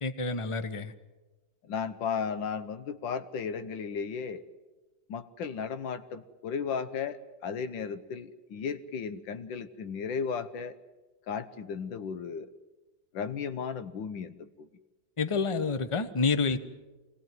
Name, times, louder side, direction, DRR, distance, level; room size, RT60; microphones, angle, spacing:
voice 1, 0.0-0.9 15.2-16.6, left 4 dB, 20° left, 11 dB, 0.9 m, -28 dB
voice 2, 1.7-4.4 5.1-10.8 11.3-12.5 13.1-14.7, left 6 dB, 85° left, 11 dB, 1.7 m, -35 dB
25.5 x 19.0 x 9.3 m, 1.2 s
omnidirectional pair, 2.0 m